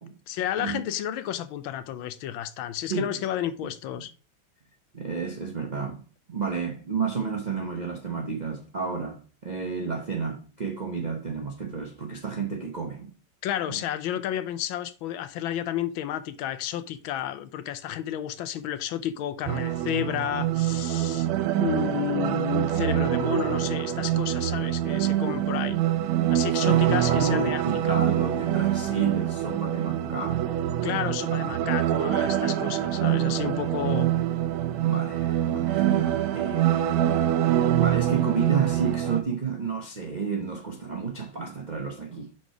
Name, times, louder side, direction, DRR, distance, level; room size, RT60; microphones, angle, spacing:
voice 1, 0.3-4.1 13.4-25.8 26.3-28.0 30.8-34.1, left 11 dB, 80° left, 1.4 m, -31 dB
voice 2, 4.9-6.0 6.3-13.1 13.7-13.8 26.5-30.5 34.7-42.3, right 5 dB, 60° right, 0.4 m, -31 dB
sound 1, 19.5-39.2, right 12 dB, 90° right, 1.5 m, -25 dB
6.1 x 4.2 x 4.6 m
omnidirectional pair, 2.2 m